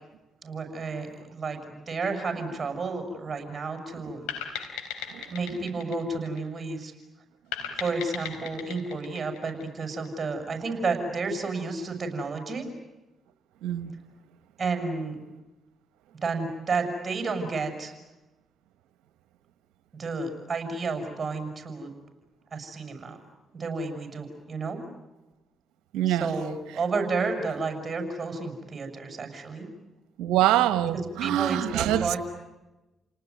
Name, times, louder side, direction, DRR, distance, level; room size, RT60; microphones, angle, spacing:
voice 1, 0.4-1.1 1.3-4.3 5.3-6.9 7.8-12.7 14.6-15.2 16.2-17.9 19.9-21.9 22.5-23.2 23.5-24.8 26.1-29.7 31.2-32.2, right 4 dB, 40° right, 5 dB, 7.1 m, -31 dB
sound 1, 4.3-6.8 7.5-10.1, left 8 dB, 90° left, 4.3 m, -37 dB
voice 2, 13.6-13.9 25.9-26.3 30.2-32.2, right 13 dB, 80° right, 12 dB, 1.5 m, -24 dB
29.5 x 19.0 x 9.7 m, 1.1 s
supercardioid pair, 50°, 0 cm